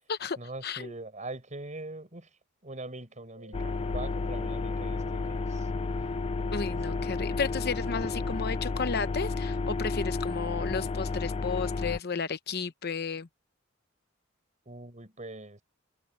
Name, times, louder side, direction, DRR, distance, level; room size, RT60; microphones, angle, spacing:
voice 1, 0.4-5.7 14.7-15.6, right 2 dB, 40° right, 5.5 m, -42 dB
sound 1, 3.4-10.9, right 2 dB, 70° right, 7.1 m, -51 dB
sound 2, 3.5-12.0, left 3 dB, 30° left, 0.3 m, -32 dB
voice 2, 6.5-13.3, left 5 dB, 55° left, 0.8 m, -33 dB
head